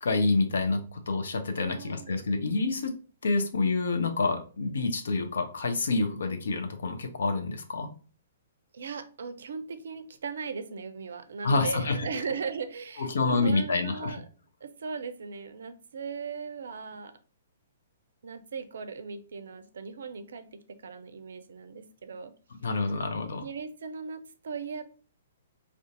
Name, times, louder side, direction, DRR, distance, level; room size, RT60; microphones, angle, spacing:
voice 1, 0.0-3.0 3.2-7.9 11.4-12.1 13.0-14.2 22.6-23.5, left 3 dB, 65° left, 6 dB, 0.5 m, -28 dB
voice 2, 1.6-2.3 8.7-14.2 14.6-17.1 18.2-22.3 23.3-24.8, right 5 dB, 65° right, 10 dB, 0.4 m, -38 dB
2.5 x 2.3 x 3.7 m, 0.38 s
figure-of-eight pair, 120°, 0 cm